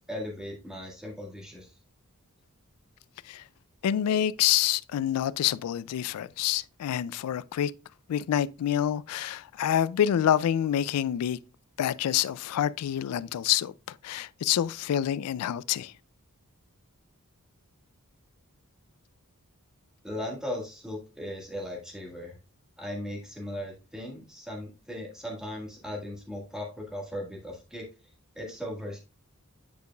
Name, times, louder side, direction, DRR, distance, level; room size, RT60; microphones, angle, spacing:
voice 1, 0.1-1.7 20.0-22.4 22.8-27.8 28.3-29.0, left 1 dB, 5° right, 1.6 m, -37 dB
voice 2, 3.8-7.7 8.1-11.4 11.8-13.7 14.0-15.9, left 10 dB, 80° left, 0.3 m, -27 dB
9.2 x 4.8 x 2.3 m
head